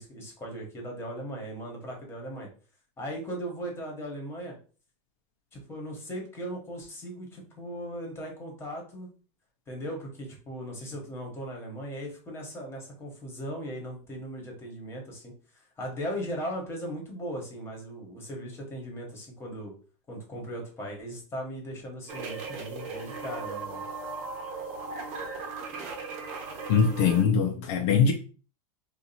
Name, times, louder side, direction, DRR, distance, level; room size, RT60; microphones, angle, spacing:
voice 1, 0.0-2.5 3.0-4.6 5.5-9.1 9.7-19.7 20.1-23.9, equal, 15° left, 0 dB, 1.3 m, -38 dB
sound 1, 22.1-27.2, right 4 dB, 45° right, 1.0 m, -37 dB
voice 2, 26.7-28.1, left 6 dB, 55° left, 2 dB, 0.6 m, -22 dB
2.8 x 2.5 x 4.1 m, 0.38 s
supercardioid pair, 145°, 18 cm